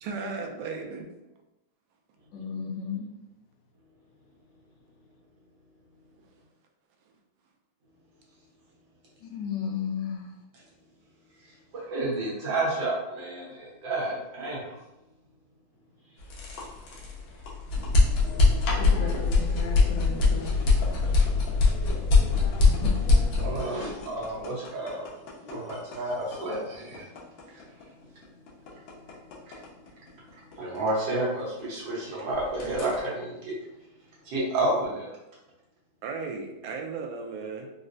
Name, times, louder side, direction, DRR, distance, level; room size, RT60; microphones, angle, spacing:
voice 1, 0.0-1.1 36.0-37.7, right 4 dB, 90° right, 3 dB, 1.4 m, -35 dB
voice 2, 2.3-3.1 9.2-10.3 18.8-20.5 22.6-22.9, left 5 dB, 70° left, 1 dB, 1.1 m, -34 dB
voice 3, 11.7-14.8 23.4-25.1 25.5-27.1 27.5-27.6 28.1-28.2 29.4-29.5 30.6-33.5 34.2-35.1, right 2 dB, 70° right, -5 dB, 1.7 m, -30 dB
sound 1, 16.2-32.0 32.3-33.0, left 3 dB, 90° left, 1.6 m, -24 dB
4.4 x 2.0 x 2.5 m, 0.94 s
omnidirectional pair, 2.2 m